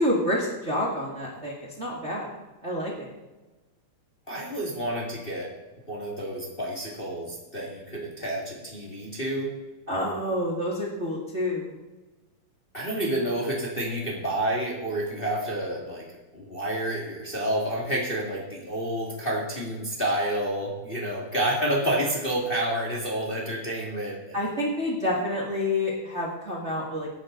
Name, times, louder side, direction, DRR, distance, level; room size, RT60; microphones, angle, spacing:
voice 1, 0.0-2.3 2.6-3.1 9.9-11.7 24.3-27.1, left 1 dB, 25° right, -2 dB, 1.9 m, -28 dB
voice 2, 4.3-5.5 5.9-9.5 12.7-16.1 16.3-24.2, right 1 dB, 20° left, -3 dB, 2.0 m, -29 dB
17.0 x 9.9 x 4.0 m, 1.1 s
omnidirectional pair, 3.4 m